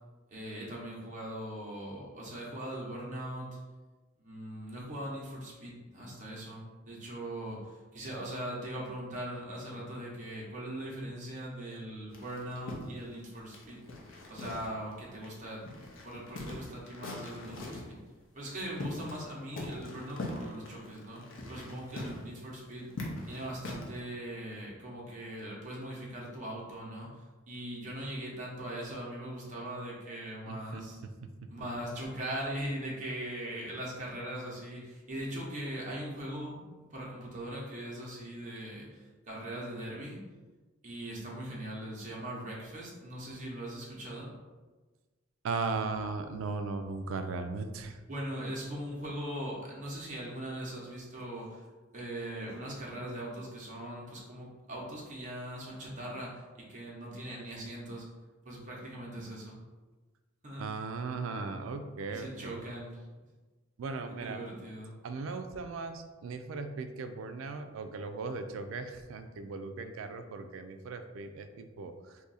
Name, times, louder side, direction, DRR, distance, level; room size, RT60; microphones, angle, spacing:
voice 1, 0.3-3.6 4.2-13.8 14.3-15.6 16.0-18.0 18.3-31.0 31.5-36.6 36.9-40.2 40.8-44.3 48.1-51.6 51.9-58.1 58.4-59.6 60.4-60.7 62.1-63.0 64.1-64.9, right 1 dB, 40° right, -4 dB, 0.8 m, -40 dB
sound 1, 12.1-14.9 15.2-15.3 15.7-17.9 18.4-19.3 19.5-24.0, left 1 dB, 75° left, 0.6 m, -42 dB
voice 2, 30.5-30.8 45.4-48.0 60.6-62.6 63.8-64.4 65.0-71.9, right 4 dB, 80° right, 8 dB, 0.3 m, -37 dB
2.7 x 2.5 x 4.0 m, 1.3 s
head